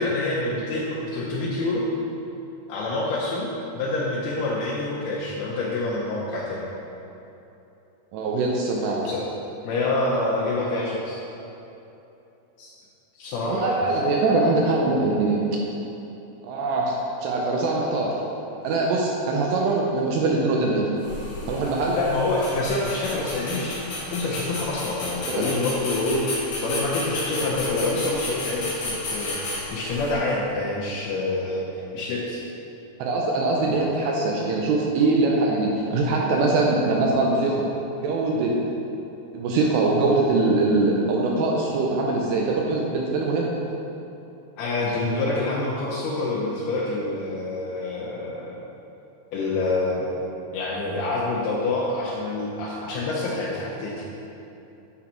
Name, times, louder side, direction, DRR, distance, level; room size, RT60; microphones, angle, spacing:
voice 1, 0.0-1.9 2.7-6.7 9.1-9.3 9.6-11.2 12.6-12.7 13.2-13.8 21.9-23.8 24.1-32.4 33.6-33.8 44.6-48.6 49.3-50.1 50.5-54.0, left 2 dB, 85° left, -6 dB, 2.2 m, -27 dB
voice 2, 8.1-9.0 13.4-15.4 16.4-16.9 17.2-18.1 18.5-20.9 21.5-22.0 25.3-25.4 33.0-37.5 38.0-38.5 39.3-43.5, right 3 dB, 80° right, -2 dB, 2.5 m, -22 dB
sound 1, 21.0-30.1, left 2 dB, 55° left, 2.7 m, -33 dB
9.7 x 4.0 x 4.4 m, 2.9 s
omnidirectional pair, 5.5 m